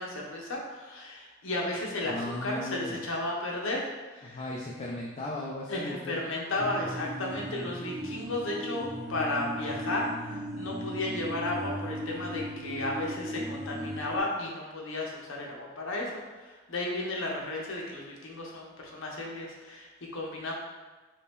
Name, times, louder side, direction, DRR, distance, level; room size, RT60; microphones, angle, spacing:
voice 1, 0.0-2.2 2.4-4.4 5.7-19.9 20.1-20.5, left 2 dB, 65° left, -2 dB, 0.7 m, -34 dB
voice 2, 2.0-3.0 4.2-6.2, left 1 dB, 30° left, -3 dB, 0.3 m, -37 dB
sound 1, 6.6-14.2, equal, 25° right, 1.1 m, -37 dB
3.2 x 2.7 x 3.5 m, 1.3 s
head